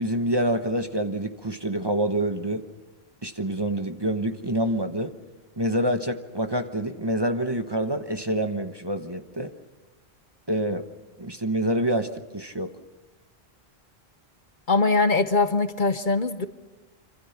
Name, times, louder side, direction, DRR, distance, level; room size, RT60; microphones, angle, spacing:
voice 1, 0.0-2.6 3.2-5.1 5.6-9.5 10.5-10.9 11.2-12.7, right 1 dB, 25° right, 7 dB, 1.1 m, -27 dB
voice 2, 14.7-16.5, left 3 dB, 50° left, 10 dB, 1.1 m, -22 dB
26.5 x 26.0 x 5.9 m, 1.2 s
omnidirectional pair, 1.1 m